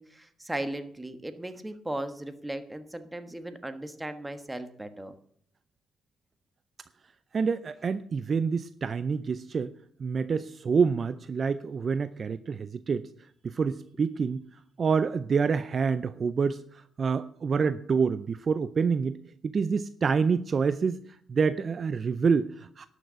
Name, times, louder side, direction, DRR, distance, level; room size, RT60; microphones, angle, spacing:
voice 1, 0.0-5.1, right 1 dB, 10° right, 9 dB, 1.3 m, -37 dB
voice 2, 7.3-9.7 10.0-13.1 13.4-14.4 14.8-19.2 19.4-21.0 21.3-22.9, right 5 dB, 45° right, 14 dB, 0.5 m, -27 dB
12.0 x 6.6 x 7.5 m, 0.64 s
cardioid pair, 90°, 0 cm